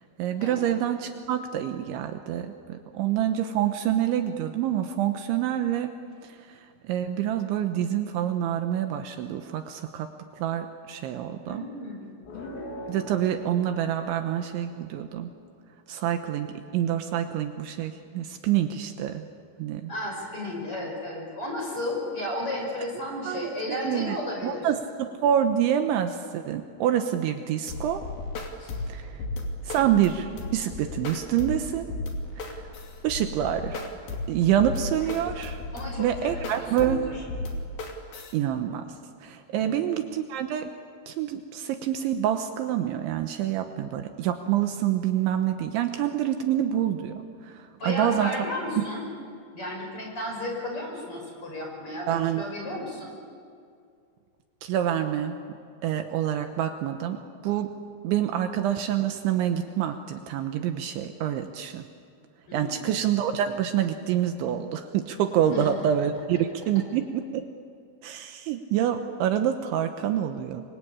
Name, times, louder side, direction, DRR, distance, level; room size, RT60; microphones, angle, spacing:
voice 1, 0.2-6.0 6.2-10.1 10.4-11.6 12.9-15.3 15.9-16.5 16.7-19.3 19.6-19.9 23.3-24.2 24.4-28.0 28.9-29.2 29.6-31.9 32.4-32.7 33.0-33.9 34.3-35.6 36.0-37.0 38.3-38.9 39.2-40.7 41.1-48.4 48.8-48.9 52.1-52.4 54.6-55.4 55.8-57.7 58.0-61.9 62.5-67.5 68.0-70.6, right 10 dB, 75° right, 7 dB, 3.2 m, -27 dB
voice 2, 11.4-12.3 19.9-24.7 28.6-28.8 35.0-35.1 35.7-37.2 39.6-39.8 47.8-49.0 49.5-53.2 62.5-63.1 65.5-65.7, left 1 dB, 25° left, 0 dB, 6.4 m, -34 dB
sound 1, 12.2-15.0, left 1 dB, 90° left, 6.1 m, -41 dB
sound 2, 27.7-38.3, left 2 dB, 50° left, 4.1 m, -35 dB
28.0 x 24.0 x 8.6 m, 2.3 s
omnidirectional pair, 5.8 m